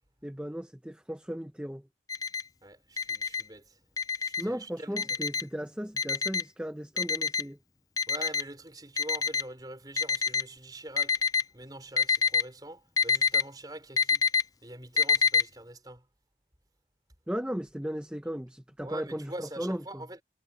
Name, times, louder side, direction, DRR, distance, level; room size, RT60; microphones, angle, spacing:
voice 1, 0.2-1.8 4.4-7.6 17.3-20.0, equal, 5° right, 0.9 m, -36 dB
Alarm, 2.1-2.4 3.0-3.4 4.0-4.4 5.0-5.4 6.0-6.4 7.0-7.4 8.0-8.4 9.0-9.4 10.0-10.4 11.0-11.4 12.0-12.4 13.0-13.4 14.0-14.4 15.0-15.4, left 6 dB, 20° left, 0.4 m, -25 dB
voice 2, 2.6-3.8 4.2-5.2 8.1-11.2 11.5-14.2 14.6-16.0 18.8-20.2, right 1 dB, 20° right, 4.7 m, -44 dB
head